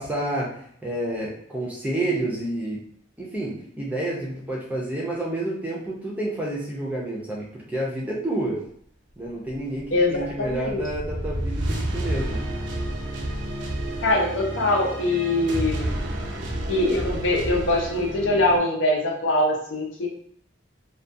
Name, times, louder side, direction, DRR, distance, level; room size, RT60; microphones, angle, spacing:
voice 1, 0.0-2.8 3.2-8.6 9.2-12.4, right 1 dB, 10° right, -4 dB, 0.5 m, -29 dB
sound 1, 9.8-18.6, right 1 dB, 75° right, 0.5 m, -30 dB
voice 2, 9.9-10.8 14.0-15.9 16.7-20.1, left 1 dB, 80° left, -2 dB, 0.6 m, -23 dB
2.3 x 2.2 x 2.5 m, 0.64 s
head